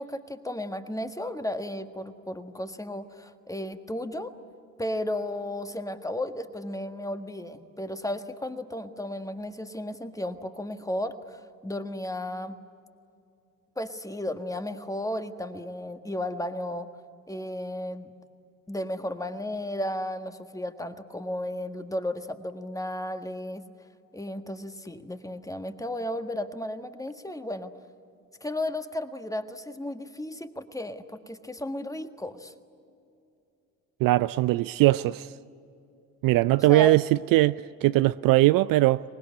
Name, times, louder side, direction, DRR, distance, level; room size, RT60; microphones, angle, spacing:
voice 1, 0.0-4.3 4.8-12.6 13.7-16.9 17.3-18.1 18.7-23.6 24.1-27.7 28.4-32.5 36.7-36.9, left 1 dB, 10° left, 1.6 m, -34 dB
voice 2, 34.0-35.3 36.2-39.0, right 18 dB, 55° right, 0.5 m, -21 dB
24.0 x 20.0 x 9.7 m
hypercardioid pair, 55°, 40 cm